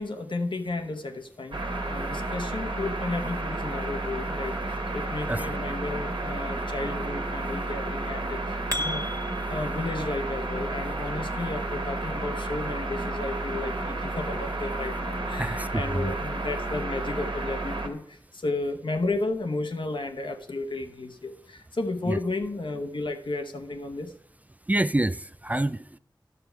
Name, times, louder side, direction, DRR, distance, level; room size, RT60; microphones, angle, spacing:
voice 1, 0.0-9.0 9.5-24.1, left 2 dB, 70° left, 1.1 m, -33 dB
sound 1, 1.5-17.9, right 2 dB, 70° right, 1.5 m, -31 dB
sound 2, 8.7-9.7, equal, 35° right, 1.6 m, -33 dB
voice 2, 15.4-16.1 22.1-22.2 24.7-26.0, right 1 dB, 20° right, 0.3 m, -27 dB
11.5 x 6.7 x 4.5 m
wide cardioid pair, 50°, 9 cm